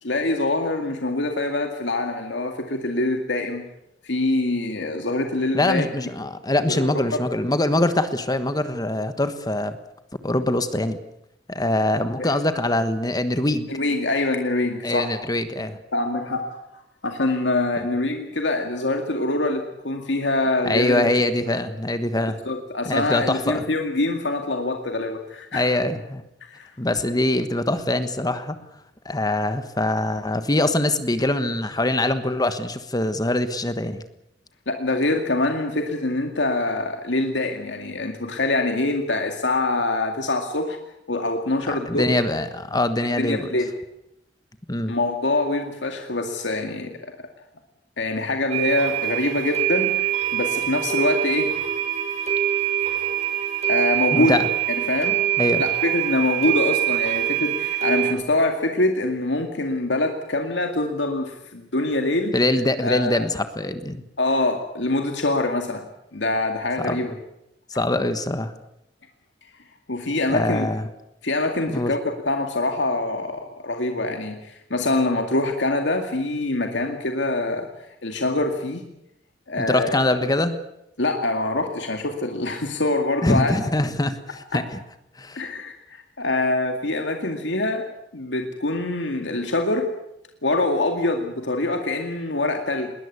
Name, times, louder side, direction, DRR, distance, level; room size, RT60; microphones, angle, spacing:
voice 1, 0.0-3.6 4.0-5.8 6.7-6.9 12.2-12.3 13.7-15.1 15.9-16.6 17.0-21.1 22.5-25.7 26.5-26.7 34.7-40.8 41.1-42.1 43.2-43.7 44.9-47.1 48.0-51.5 53.7-54.4 54.7-55.2 55.6-62.3 62.8-63.3 64.2-65.9 66.1-67.1 69.9-70.7 71.2-72.0 72.3-77.7 78.0-78.8 79.5-80.0 81.0-83.5 84.5-84.6 85.4-87.9 88.1-89.9 90.4-92.9, left 2 dB, 90° left, 4 dB, 2.2 m, -24 dB
voice 2, 5.5-9.8 10.2-11.0 11.5-13.7 14.8-15.8 17.8-17.9 20.6-22.4 22.8-23.7 25.5-26.2 26.8-28.6 29.0-34.0 41.7-43.5 44.7-45.0 54.1-54.5 55.4-55.6 62.3-64.0 66.8-67.1 67.7-68.5 70.3-70.9 71.7-71.9 79.6-80.6 83.2-84.8 85.2-85.4, left 1 dB, 20° left, 10 dB, 1.3 m, -23 dB
sound 1, 48.5-58.1, right 11 dB, 40° right, 6.2 m, -24 dB
21.0 x 19.5 x 8.4 m, 0.83 s
head